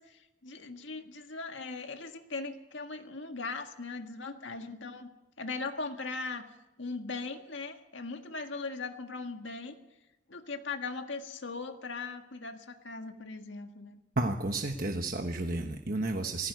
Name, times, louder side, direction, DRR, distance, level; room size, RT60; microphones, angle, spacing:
voice 1, 0.0-5.1 5.4-6.5 6.8-9.8 10.3-14.0, left 3 dB, 75° left, 5 dB, 1.7 m, -39 dB
voice 2, 14.2-16.5, right 2 dB, 45° right, 4 dB, 1.2 m, -32 dB
19.5 x 16.0 x 9.4 m, 1.0 s
head